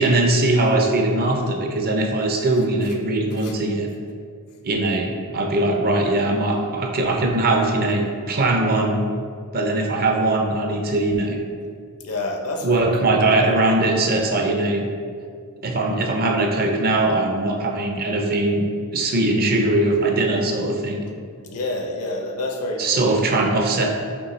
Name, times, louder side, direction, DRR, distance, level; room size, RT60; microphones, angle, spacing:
voice 1, 0.0-3.9 4.6-9.1 9.5-11.4 12.6-14.9 15.6-21.0 22.8-23.9, right 2 dB, 45° right, 2 dB, 0.5 m, -21 dB
voice 2, 12.0-13.2 15.8-16.0 21.4-23.2, left 2 dB, 70° left, 2 dB, 0.6 m, -28 dB
5.2 x 3.1 x 3.1 m, 2.2 s
head